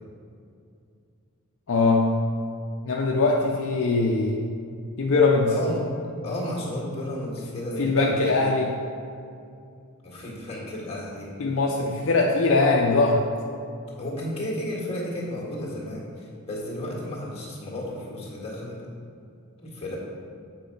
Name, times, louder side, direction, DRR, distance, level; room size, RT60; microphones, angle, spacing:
voice 1, 1.7-2.1 2.8-4.5 5.0-5.5 7.8-8.7 11.4-13.2, left 3 dB, 60° left, -1 dB, 0.6 m, -21 dB
voice 2, 5.5-5.9 6.2-8.4 10.0-11.3 14.0-18.8 19.6-20.0, left 1 dB, 30° left, -4 dB, 1.8 m, -33 dB
7.6 x 4.7 x 5.3 m, 2.5 s
head